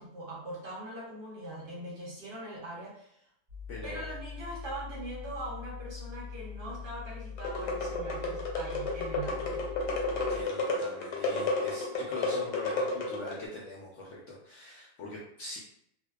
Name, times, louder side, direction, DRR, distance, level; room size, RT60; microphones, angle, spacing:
voice 1, 0.0-3.3 3.8-9.7, right 1 dB, 70° right, -5 dB, 0.5 m, -42 dB
sound 1, 3.5-10.4, left 7 dB, 40° right, 1.0 m, -43 dB
voice 2, 3.7-4.1 10.1-15.6, left 2 dB, 70° left, -4 dB, 0.7 m, -42 dB
sound 2, 7.4-13.4, left 2 dB, 85° left, 1.2 m, -32 dB
2.6 x 2.1 x 2.3 m, 0.72 s
omnidirectional pair, 1.7 m